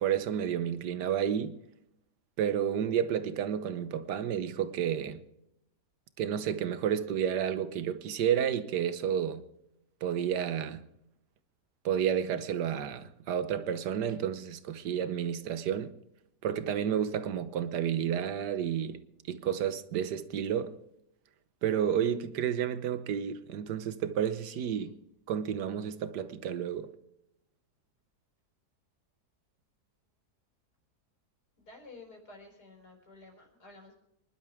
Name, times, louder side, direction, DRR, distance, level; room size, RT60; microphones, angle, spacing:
voice 1, 0.0-1.6 2.4-5.2 6.2-9.4 10.0-10.8 11.8-15.9 16.4-19.0 19.3-20.8 21.6-24.9 25.3-26.9, right 9 dB, 85° right, 1.5 m, -31 dB
voice 2, 16.7-17.2 24.5-24.9 31.6-33.9, left 2 dB, 80° left, 4.7 m, -52 dB
25.0 x 11.5 x 3.5 m
omnidirectional pair, 1.7 m